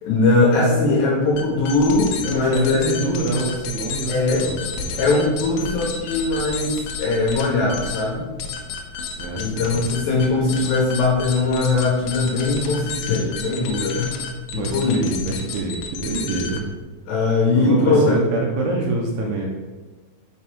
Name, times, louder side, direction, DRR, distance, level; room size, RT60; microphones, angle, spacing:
voice 1, 0.0-3.0 4.1-4.5 5.0-8.3 9.4-14.1 14.5-15.0 17.1-18.2, left 3 dB, 70° left, -3 dB, 2.8 m, -20 dB
sound 1, 1.3-16.8, left 5 dB, 90° left, 2.2 m, -32 dB
voice 2, 2.2-5.0 9.2-9.7 14.5-16.6 17.6-19.5, right 3 dB, 80° right, 0 dB, 3.0 m, -26 dB
7.0 x 6.4 x 3.5 m, 1.3 s
omnidirectional pair, 5.9 m